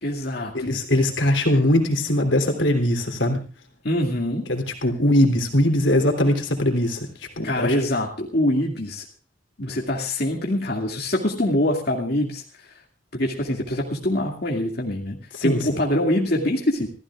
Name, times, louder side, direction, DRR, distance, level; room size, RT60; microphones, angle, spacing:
voice 1, 0.0-0.8 3.8-4.4 7.4-9.0 9.6-12.4 13.1-16.9, left 1 dB, 60° left, -1 dB, 2.4 m, -24 dB
voice 2, 0.5-3.4 4.5-7.7 15.3-15.8, left 1 dB, 90° left, 3 dB, 3.3 m, -21 dB
26.5 x 15.5 x 2.5 m, 0.37 s
head